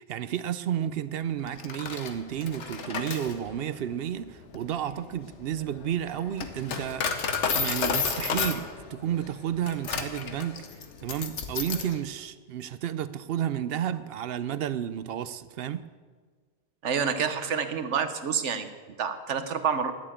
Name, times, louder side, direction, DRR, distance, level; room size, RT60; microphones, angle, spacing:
voice 1, 0.0-7.2 7.5-10.6 11.0-15.9, right 10 dB, 65° right, 0.7 m, -32 dB
Coin (dropping), 1.5-12.0, left 5 dB, 80° left, 1.3 m, -32 dB
voice 2, 16.8-18.7 19.0-19.9, right 6 dB, 80° right, 1.2 m, -28 dB
11.5 x 7.3 x 8.6 m
omnidirectional pair, 1.2 m